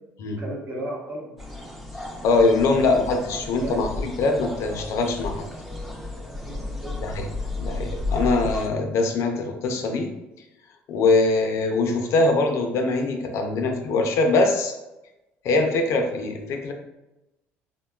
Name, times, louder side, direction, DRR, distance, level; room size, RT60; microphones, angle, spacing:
voice 1, 0.4-1.6 2.7-2.9 3.6-3.8 6.4-7.0, right 1 dB, 40° right, -2 dB, 0.8 m, -35 dB
sound 1, 1.4-8.7, left 2 dB, ahead, 0.5 m, -33 dB
voice 2, 2.2-5.5 7.0-7.3 7.6-10.1 10.9-14.8 15.4-16.7, left 3 dB, 65° left, 4 dB, 0.5 m, -22 dB
3.4 x 2.2 x 2.3 m, 0.96 s
supercardioid pair, 85°, 5 cm